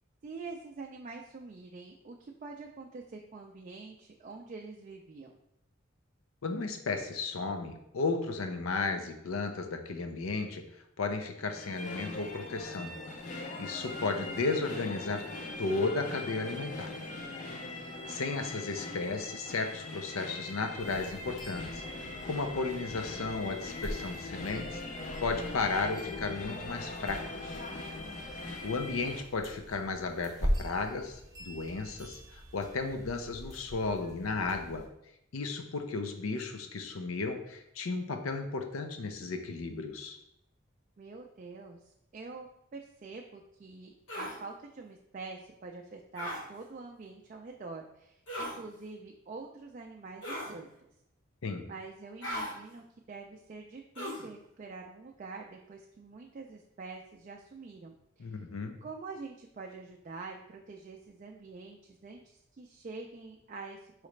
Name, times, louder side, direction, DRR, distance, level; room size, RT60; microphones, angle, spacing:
voice 1, 0.2-5.4 18.2-18.5 41.0-42.5 42.7-50.7 51.7-58.5 58.8-63.9, right 4 dB, 40° right, 1 dB, 0.3 m, -46 dB
voice 2, 6.4-10.6 11.0-12.9 13.3-15.2 15.6-16.9 17.7-27.6 28.6-34.8 35.3-40.2 51.4-51.7 58.2-58.8, left 3 dB, 90° left, 6 dB, 0.6 m, -34 dB
sound 1, 11.4-29.2, left 2 dB, 35° left, 0.4 m, -41 dB
sound 2, 20.8-34.9, equal, 15° right, 0.7 m, -41 dB
sound 3, 44.1-44.4 46.2-46.4 48.3-48.6 50.2-50.6 52.2-52.5 53.9-54.3, equal, 65° left, 1.0 m, -37 dB
4.8 x 3.1 x 3.2 m, 0.79 s
head